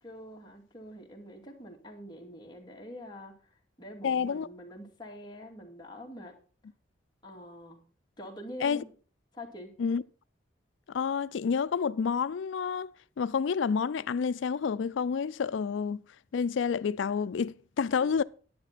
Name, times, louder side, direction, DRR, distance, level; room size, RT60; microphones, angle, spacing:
voice 1, 0.0-3.4 3.8-6.4 7.2-7.8 8.2-8.9 9.3-9.7 18.0-18.1, equal, 25° left, 2.4 m, -45 dB
voice 2, 4.0-4.5 8.6-8.8 9.8-10.0 10.9-16.0 16.3-18.2, left 6 dB, 80° left, 0.4 m, -29 dB
10.0 x 10.0 x 4.2 m
head